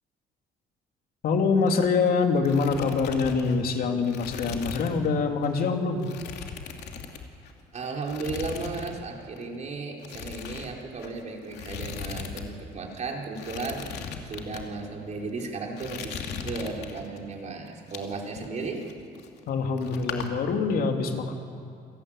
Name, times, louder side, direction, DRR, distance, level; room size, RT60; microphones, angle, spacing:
voice 1, 1.2-6.0 19.5-21.3, left 4 dB, 60° left, 3 dB, 2.9 m, -25 dB
sound 1, 1.5-2.1 2.3-5.1 5.4-5.6 6.0-7.6 8.0-9.0 9.2-9.4 10.0-12.5 12.7-12.8 13.3-14.6 15.2-15.4 15.8-17.2 17.7-19.5 19.8-20.3, left 7 dB, 80° left, 2.7 m, -39 dB
voice 2, 7.7-18.9, right 3 dB, 45° right, 0 dB, 4.4 m, -35 dB
28.5 x 17.0 x 8.9 m, 2.3 s
cardioid pair, 110°, 17 cm